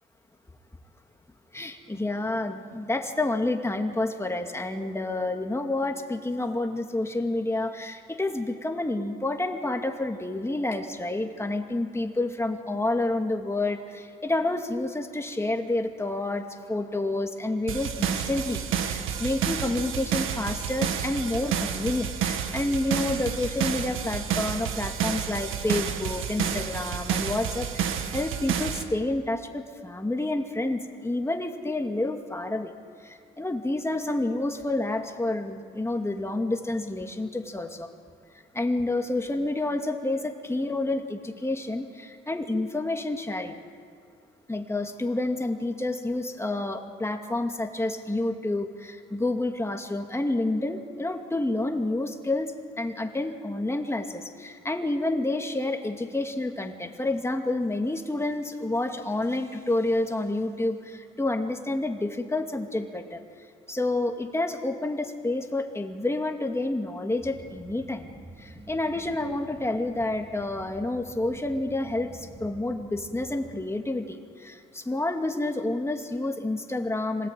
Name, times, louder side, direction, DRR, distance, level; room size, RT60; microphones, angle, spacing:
voice 1, 1.5-32.7 33.0-37.9 38.5-43.5 44.5-63.2 63.7-68.1 68.4-77.3, left 2 dB, 15° left, 4 dB, 2.3 m, -29 dB
sound 1, 17.7-28.8, right 8 dB, 90° right, 1.8 m, -30 dB
sound 2, 67.2-73.6, right 2 dB, 25° right, 3.9 m, -48 dB
26.5 x 18.5 x 9.2 m, 2.2 s
cardioid pair, 90°, 20 cm